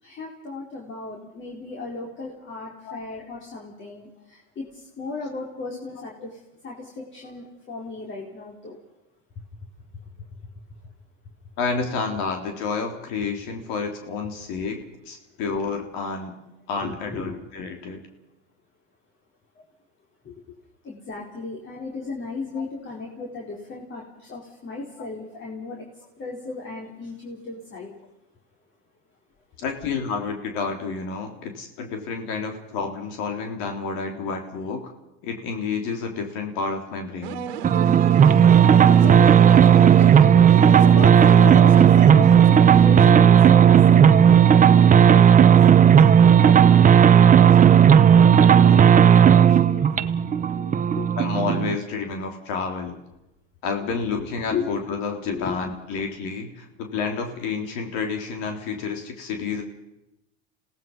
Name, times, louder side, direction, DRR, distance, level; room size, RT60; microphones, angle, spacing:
voice 1, 0.0-6.4 6.6-8.8 16.8-17.3 17.6-17.7 20.2-20.3 20.8-25.9 26.2-27.9 38.0-51.1 54.1-54.8 55.2-55.6, left 4 dB, 40° left, -2 dB, 4.4 m, -35 dB
voice 2, 11.6-14.8 15.1-16.3 16.7-18.0 29.6-34.9 35.2-37.5 45.8-45.9 48.7-48.8 51.2-53.0 53.6-59.6, left 5 dB, 70° left, 3 dB, 3.6 m, -30 dB
sound 1, 37.2-43.9, right 9 dB, 85° right, 1.8 m, -33 dB
sound 2, 37.6-51.8, right 8 dB, 25° right, 1.0 m, -14 dB
27.5 x 18.0 x 5.5 m, 0.90 s
supercardioid pair, 110°, 31 cm